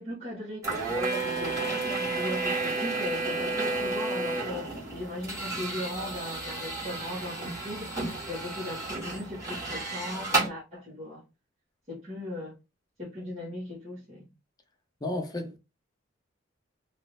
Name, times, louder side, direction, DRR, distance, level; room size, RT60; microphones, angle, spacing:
voice 1, 0.0-11.2 11.9-12.6 13.0-14.3, left 1 dB, 35° right, 1.8 m, -38 dB
sound 1, 0.6-10.5, right 2 dB, 15° right, 2.0 m, -31 dB
voice 2, 15.0-15.6, left 1 dB, 20° left, 0.6 m, -32 dB
3.8 x 2.8 x 3.3 m
head